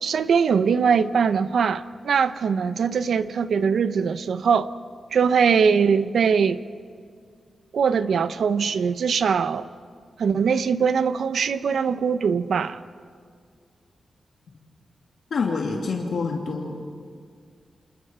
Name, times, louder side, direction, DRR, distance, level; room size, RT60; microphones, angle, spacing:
voice 1, 0.0-4.7 5.1-6.6 7.7-9.7 10.2-12.8, right 6 dB, 80° right, 0.7 m, -21 dB
voice 2, 15.3-16.9, left 4 dB, 75° left, 2.4 m, -27 dB
29.5 x 27.5 x 4.4 m
wide cardioid pair, 150°, 0 cm